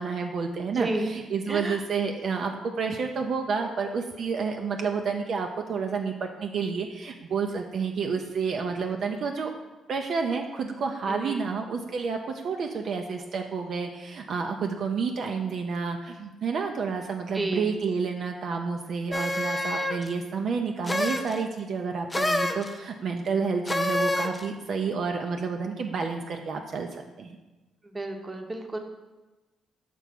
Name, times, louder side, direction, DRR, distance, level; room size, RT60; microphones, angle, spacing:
voice 1, 0.0-9.5 9.9-27.4, right 5 dB, 60° right, 3 dB, 0.5 m, -30 dB
voice 2, 0.7-1.1 1.5-1.8 11.1-11.5 17.3-17.7 27.9-28.8, right 2 dB, 20° right, 4 dB, 0.8 m, -31 dB
sound 1, 19.1-20.1 20.9-21.4 22.1-22.7 23.7-24.4, left 1 dB, 15° left, 0.5 m, -27 dB
6.0 x 3.4 x 5.9 m, 1.1 s
cardioid pair, 90°, 0 cm